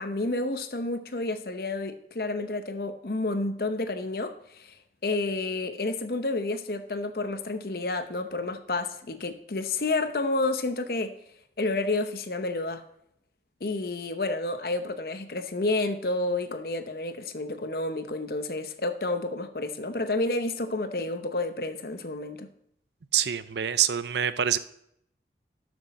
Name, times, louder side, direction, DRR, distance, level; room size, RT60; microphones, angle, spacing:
voice 1, 0.0-4.7 5.0-11.1 11.6-12.8 13.6-22.5, left 2 dB, 55° left, 9 dB, 0.8 m, -30 dB
voice 2, 23.1-24.6, right 9 dB, 75° right, 14 dB, 0.5 m, -25 dB
12.5 x 6.2 x 4.2 m, 0.73 s
head